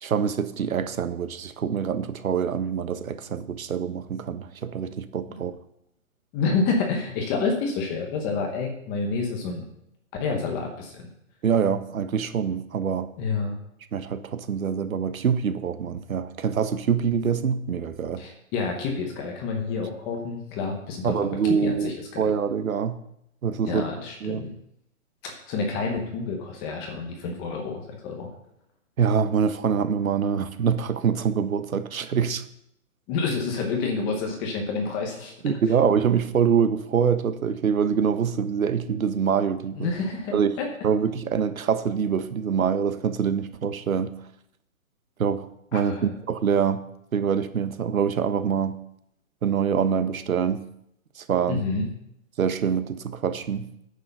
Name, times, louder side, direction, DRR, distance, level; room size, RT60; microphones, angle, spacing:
voice 1, 0.0-5.5 11.4-13.1 13.9-18.2 21.0-23.0 23.4-23.8 24.2-24.5 29.0-32.4 35.4-39.9 40.3-40.6 40.8-44.1 45.2-45.5 45.7-46.8 47.1-48.8 49.4-50.6 51.2-51.6 52.4-53.7, right 7 dB, 75° right, 11 dB, 1.2 m, -25 dB
voice 2, 6.3-9.6 10.2-11.1 13.2-13.5 18.2-21.1 21.4-21.9 23.6-24.5 25.2-28.3 33.1-35.3 39.8-40.7 45.7-46.1 51.5-51.8, left 4 dB, 10° left, 2 dB, 0.9 m, -28 dB
9.6 x 7.0 x 6.6 m, 0.77 s
hypercardioid pair, 165°, 42 cm